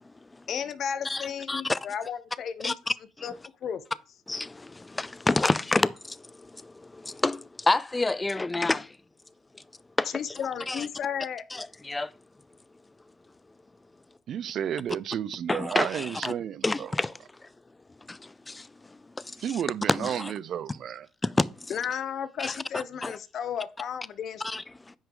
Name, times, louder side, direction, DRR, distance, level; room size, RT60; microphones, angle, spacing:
voice 1, 0.5-2.7 3.2-3.3 3.6-3.8 10.1-11.4 21.7-24.4, left 8 dB, 50° left, 0.8 m, -33 dB
voice 2, 1.0-1.8 2.6-3.3 4.3-8.9 9.5-9.6 10.0-10.1 10.7-10.9 11.5-12.1 15.5-16.3 16.6-17.5 18.1-19.6 19.9-20.3 21.2-21.7 22.4-23.1 24.4-24.9, left 2 dB, 15° left, 0.4 m, -29 dB
voice 3, 14.3-16.9 19.4-21.1, right 9 dB, 55° right, 0.4 m, -32 dB
9.8 x 6.1 x 3.8 m
cardioid pair, 115°, 0 cm